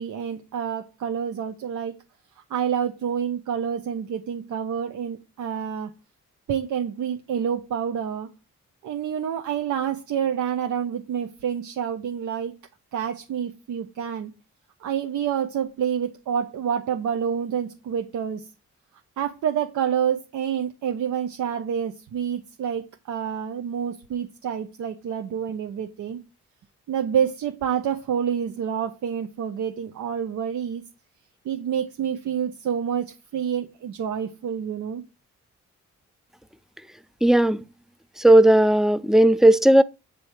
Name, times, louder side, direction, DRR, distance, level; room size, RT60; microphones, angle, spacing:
voice 1, 0.0-1.9 2.5-5.9 6.5-8.3 8.8-12.5 12.9-14.3 14.8-18.5 19.2-26.2 26.9-30.8 31.4-35.0, right 8 dB, 75° right, 0.7 m, -28 dB
voice 2, 37.2-37.6 38.2-39.8, right 1 dB, ahead, 0.5 m, -15 dB
7.7 x 2.7 x 4.8 m
supercardioid pair, 55°, 30 cm